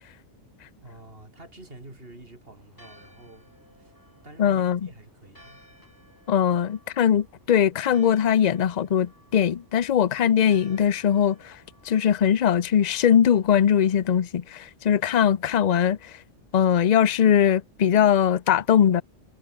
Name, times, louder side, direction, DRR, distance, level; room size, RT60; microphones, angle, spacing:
voice 1, 0.8-3.5 3.8-3.9 4.2-5.6, right 2 dB, 50° right, 4.2 m, -48 dB
Church bell, 2.6-14.1, equal, 15° left, 8.1 m, -58 dB
voice 2, 4.4-4.8 6.3-11.5 11.9-16.0 16.5-19.0, left 9 dB, 45° left, 0.6 m, -21 dB
omnidirectional pair, 1.3 m